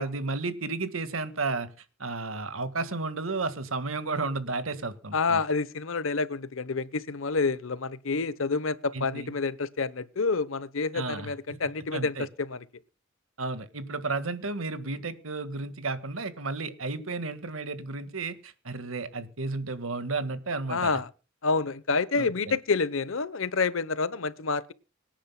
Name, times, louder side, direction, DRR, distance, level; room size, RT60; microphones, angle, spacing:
voice 1, 0.0-1.7 2.0-5.4 8.9-9.3 10.9-11.6 11.9-12.3 13.4-21.0 22.2-22.6, right 3 dB, 85° right, 1.7 m, -33 dB
voice 2, 5.1-12.6 20.7-21.1 21.4-24.7, left 4 dB, 75° left, 0.9 m, -28 dB
24.5 x 10.0 x 2.2 m
head